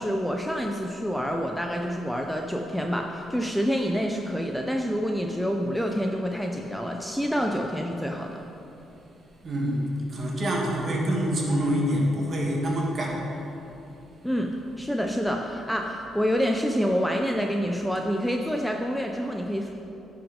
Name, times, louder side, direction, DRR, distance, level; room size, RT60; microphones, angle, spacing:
voice 1, 0.0-8.4 14.2-19.7, equal, ahead, 2 dB, 0.5 m, -27 dB
voice 2, 9.4-13.2, equal, 40° right, -2 dB, 1.9 m, -26 dB
10.5 x 5.9 x 5.2 m, 2.9 s
cardioid pair, 110°, 0 cm